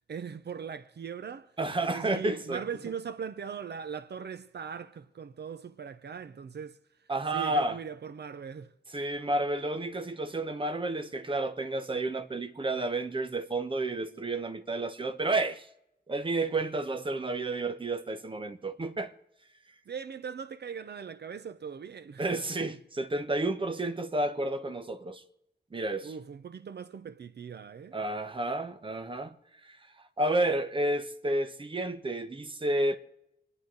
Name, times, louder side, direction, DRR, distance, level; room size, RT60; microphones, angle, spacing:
voice 1, 0.1-1.5 1.8-6.8 7.3-8.7 19.9-22.2 26.0-28.0, right 7 dB, 70° right, 0.7 m, -40 dB
voice 2, 1.6-2.6 7.1-7.8 8.9-15.7 16.1-19.1 22.2-25.2 25.7-26.1 27.9-29.3 29.6-29.8 30.2-33.0, right 2 dB, 30° right, 1.1 m, -31 dB
28.0 x 10.0 x 4.0 m
wide cardioid pair, 160°, 18 cm